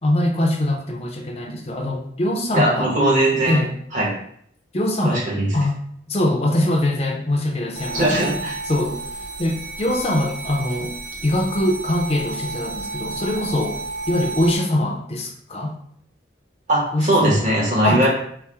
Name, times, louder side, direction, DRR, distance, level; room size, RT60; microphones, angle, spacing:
voice 1, 0.0-2.9 3.5-3.8 4.7-5.3 5.5-5.8 6.1-9.0 9.4-10.9 11.2-13.8 14.1-15.7 16.9-17.4 17.8-18.1, left 1 dB, 35° left, 1 dB, 0.6 m, -22 dB
voice 2, 2.5-3.6 3.9-4.1 5.0-5.5 7.9-8.6 16.7-18.1, right 1 dB, 40° right, -4 dB, 1.0 m, -19 dB
sound 1, 7.8-14.6, right 3 dB, 65° right, 1.2 m, -32 dB
4.2 x 2.1 x 3.4 m, 0.66 s
head